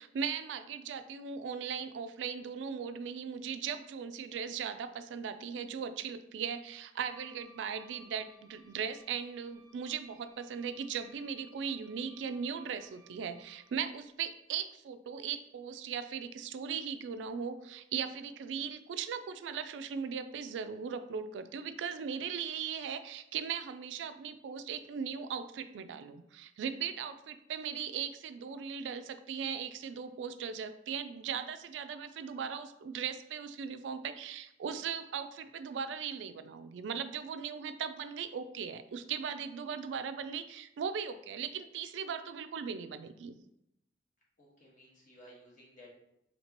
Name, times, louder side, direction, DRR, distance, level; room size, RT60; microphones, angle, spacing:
voice 1, 0.0-43.3, right 7 dB, 85° right, 10 dB, 0.3 m, -38 dB
Wind instrument woodwind instrument, 7.1-13.8, right 2 dB, 20° right, 0.4 m, -62 dB
voice 2, 44.4-45.9, equal, 45° left, -5 dB, 1.4 m, -56 dB
4.4 x 2.8 x 2.9 m, 0.82 s
head